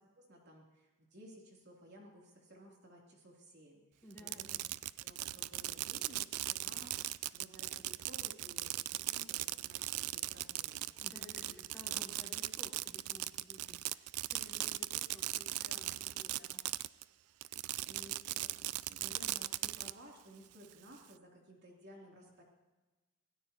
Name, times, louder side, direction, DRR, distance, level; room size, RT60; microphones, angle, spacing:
voice 1, 0.1-4.7 5.0-10.9 11.4-11.6 15.6-16.0 16.3-16.6 17.4-22.4, equal, 50° right, -2 dB, 3.0 m, -57 dB
voice 2, 4.0-4.5 11.0-16.5, left 1 dB, 10° left, -5 dB, 4.2 m, -56 dB
Fireworks, 4.1-17.0 17.4-19.9, right 16 dB, 85° right, 0.4 m, -39 dB
26.5 x 17.0 x 2.9 m, 1.2 s
head